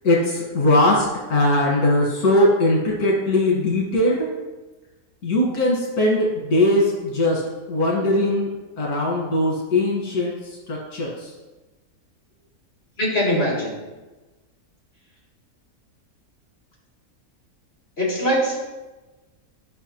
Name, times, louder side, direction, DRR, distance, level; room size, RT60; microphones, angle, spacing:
voice 1, 0.0-4.3 5.2-7.4 7.7-8.5 8.8-11.3, left 1 dB, 85° left, -4 dB, 1.9 m, -20 dB
voice 2, 13.0-13.7 18.0-18.6, equal, 40° left, -5 dB, 2.8 m, -21 dB
11.5 x 5.6 x 2.9 m, 1.2 s
omnidirectional pair, 1.6 m